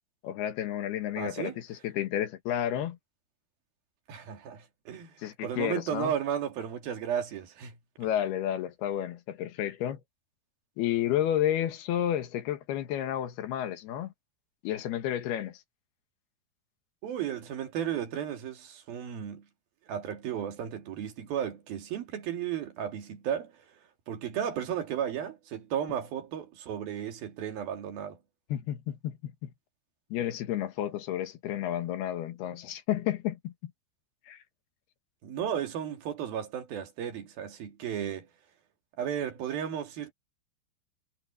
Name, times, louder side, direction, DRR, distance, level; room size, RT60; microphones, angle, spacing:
voice 1, 0.2-3.0 5.2-6.1 8.0-10.0 10.8-14.1 14.6-15.6 28.5-29.5 30.1-33.7 34.3-34.4, left 11 dB, 80° left, 3.3 m, -31 dB
voice 2, 1.2-1.6 4.1-5.1 5.4-7.8 17.0-19.5 19.9-23.5 24.1-28.2 35.2-38.3 39.0-40.1, right 9 dB, 65° right, 3.9 m, -34 dB
omnidirectional pair, 4.7 m